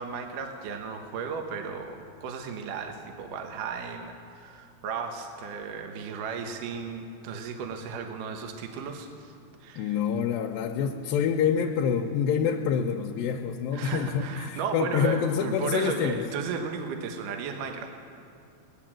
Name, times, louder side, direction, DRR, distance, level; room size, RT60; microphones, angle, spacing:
voice 1, 0.0-9.3 9.6-9.9 13.7-17.9, right 5 dB, 70° right, 4 dB, 2.6 m, -35 dB
voice 2, 9.8-16.2, left 7 dB, 85° left, 1 dB, 2.4 m, -27 dB
21.0 x 9.2 x 7.4 m, 2.6 s
omnidirectional pair, 4.2 m